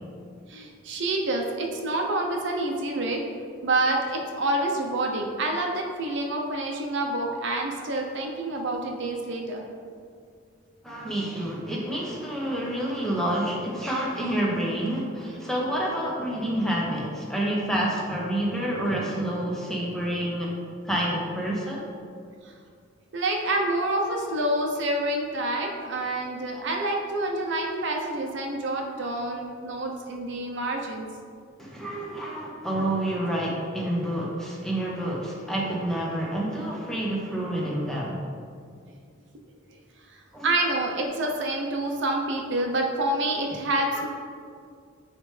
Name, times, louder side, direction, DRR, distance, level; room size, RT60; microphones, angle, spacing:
voice 1, 0.5-3.2 3.6-9.7 22.4-22.5 23.1-31.1 40.4-44.1, right 2 dB, 65° right, 1 dB, 0.7 m, -27 dB
voice 2, 10.8-20.5 20.8-21.9 31.6-38.2 40.3-40.5 43.9-44.1, right 1 dB, ahead, -4 dB, 0.8 m, -28 dB
9.5 x 3.3 x 3.3 m, 2.2 s
head